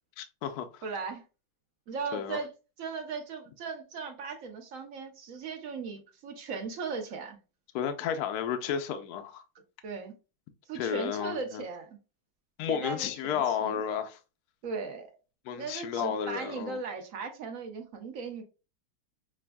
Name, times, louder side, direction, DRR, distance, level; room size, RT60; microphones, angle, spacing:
voice 1, 0.2-0.8 2.1-2.4 7.7-9.4 10.7-11.6 12.6-14.2 15.5-16.8, left 8 dB, 70° left, 0.9 m, -32 dB
voice 2, 0.8-1.2 1.9-2.5 2.8-7.4 9.8-10.1 10.7-11.9 12.7-13.8 14.6-15.1 15.6-18.4, right 4 dB, 60° right, 0.9 m, -37 dB
6.0 x 2.3 x 2.2 m
omnidirectional pair, 2.1 m